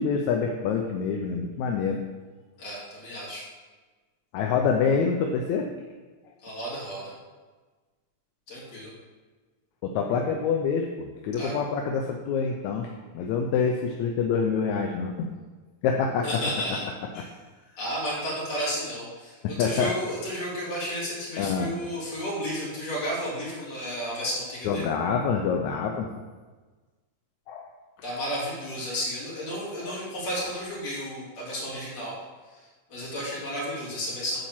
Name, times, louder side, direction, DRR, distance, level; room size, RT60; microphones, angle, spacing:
voice 1, 0.0-2.0 4.3-5.7 9.8-12.9 13.1-15.3 15.8-16.3 19.4-19.9 21.4-21.7 24.7-26.1 27.5-27.7 29.8-30.0, left 6 dB, 75° left, 2 dB, 2.0 m, -26 dB
voice 2, 2.6-3.4 6.4-7.1 8.5-8.9 11.4-11.5 16.2-16.8 17.1-17.3 17.8-24.9 28.0-32.2 32.5-32.6 32.9-34.4, equal, 60° left, -6 dB, 4.3 m, -32 dB
9.3 x 4.3 x 7.3 m, 1.3 s
omnidirectional pair, 3.5 m